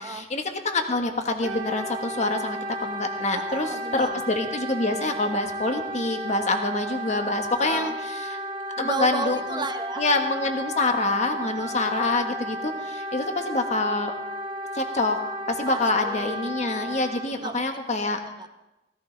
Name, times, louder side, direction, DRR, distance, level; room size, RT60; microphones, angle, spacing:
voice 1, 0.0-8.4 8.8-9.4 10.0-14.1 14.7-15.2 15.5-18.2, left 2 dB, 40° left, 5 dB, 1.4 m, -26 dB
Wind instrument woodwind instrument, 1.4-17.3, right 1 dB, 50° right, 1.5 m, -33 dB
voice 2, 3.3-4.2 7.6-8.0 8.8-10.1 11.4-11.8 15.7-16.4 17.4-17.7 18.4-18.5, right 3 dB, 25° right, 7 dB, 0.8 m, -33 dB
16.5 x 15.5 x 3.4 m, 0.98 s
head